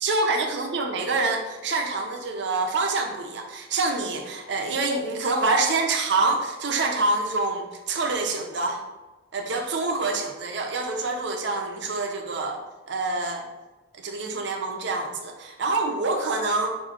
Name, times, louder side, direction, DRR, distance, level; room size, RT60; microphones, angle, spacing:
voice 1, 0.0-8.8 9.3-12.6 12.9-13.5 14.0-16.7, right 3 dB, 60° right, 3 dB, 0.6 m, -26 dB
6.8 x 2.6 x 2.4 m, 1.2 s
head